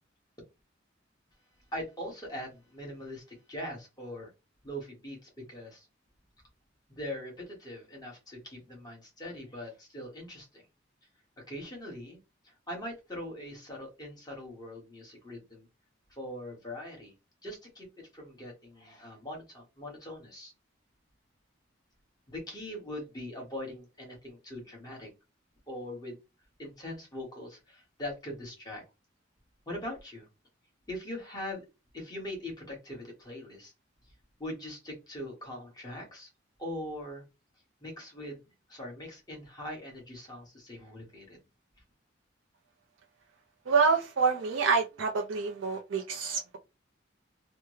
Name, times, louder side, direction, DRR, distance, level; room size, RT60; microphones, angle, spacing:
voice 1, 1.7-4.3 4.6-5.9 6.9-10.6 11.5-12.2 12.4-15.7 16.1-17.1 17.4-20.5 22.3-25.1 25.7-26.2 26.6-28.8 29.7-30.3 30.9-31.6 31.9-33.7 34.4-36.3 36.6-37.2 37.8-38.4 38.7-41.4, left 1 dB, 20° left, 1.5 m, -41 dB
voice 2, 43.7-46.6, right 5 dB, 90° right, 0.6 m, -27 dB
3.4 x 2.1 x 3.1 m
head